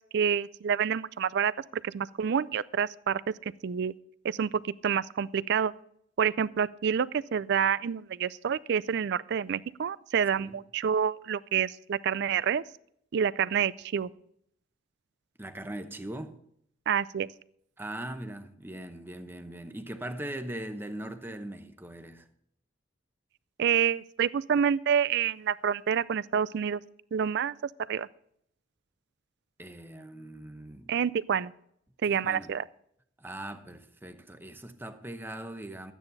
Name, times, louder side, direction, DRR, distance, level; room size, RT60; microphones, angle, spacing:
voice 1, 0.1-3.3 3.6-3.9 4.2-4.5 4.8-5.7 6.2-12.6 13.1-14.1 16.9-17.3 23.6-26.8 27.1-27.5 27.9-28.1 30.9-31.5 32.0-32.6, right 7 dB, 60° right, 0.4 m, -28 dB
voice 2, 15.4-16.4 17.8-22.2 29.6-30.9 32.1-32.5 33.2-35.9, right 1 dB, 10° right, 0.9 m, -40 dB
12.5 x 9.2 x 4.0 m
head